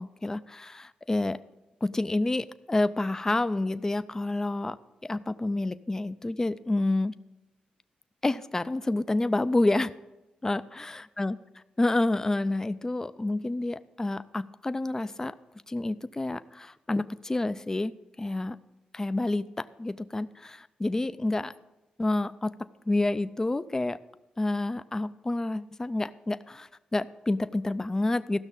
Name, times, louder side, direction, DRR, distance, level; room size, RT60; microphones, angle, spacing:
voice 1, 0.0-1.4 1.8-4.8 5.0-7.1 8.2-9.9 10.4-10.8 11.2-11.3 11.8-15.3 15.7-17.9 18.2-18.6 18.9-21.5 22.0-24.0 24.4-28.4, left 2 dB, 20° left, 13 dB, 0.4 m, -29 dB
14.0 x 6.2 x 5.4 m, 0.97 s
cardioid pair, 75°, 3 cm